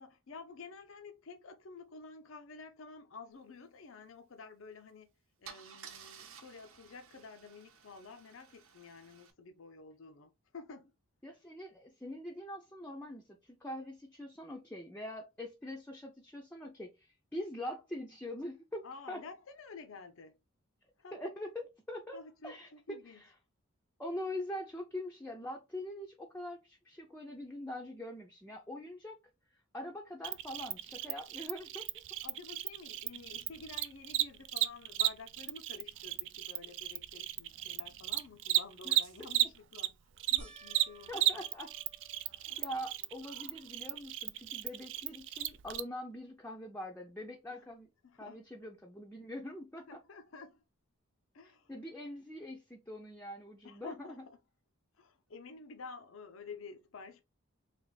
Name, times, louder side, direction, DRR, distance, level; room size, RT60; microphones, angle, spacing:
voice 1, 0.0-5.1 5.4-10.9 18.8-20.4 21.0-21.2 22.1-23.2 32.2-40.0 40.3-41.5 42.5-42.7 47.5-47.6 48.0-48.4 49.9-50.6 51.3-51.7 53.6-54.4 55.0-57.2, left 4 dB, 70° left, 0.6 m, -51 dB
Car / Engine starting / Idling, 4.7-4.9 5.4-9.3, right 7 dB, 85° right, 0.9 m, -54 dB
voice 2, 11.2-19.2 21.1-23.3 24.0-29.2 29.7-31.8 38.8-39.0 41.1-41.7 42.6-47.9 48.2-49.9 51.7-54.2, left 1 dB, 10° left, 0.5 m, -43 dB
Cricket, 30.2-39.9 40.2-45.8, right 14 dB, 60° right, 0.4 m, -34 dB
sound 1, 40.4-43.0 43.6-44.2 44.5-44.6 47.8-47.9, right 2 dB, 30° right, 0.9 m, -57 dB
3.3 x 3.0 x 3.9 m
head